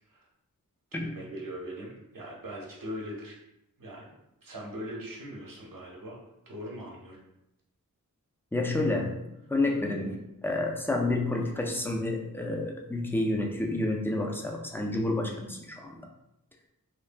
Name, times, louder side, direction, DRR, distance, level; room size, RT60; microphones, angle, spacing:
voice 1, 0.9-3.3 3.8-4.1 4.4-6.2 6.5-7.2, equal, 70° right, -2 dB, 0.8 m, -40 dB
voice 2, 8.5-10.2 10.4-16.0, left 2 dB, 5° left, 1 dB, 0.3 m, -29 dB
3.1 x 2.1 x 2.5 m, 0.86 s
wide cardioid pair, 80°, 35 cm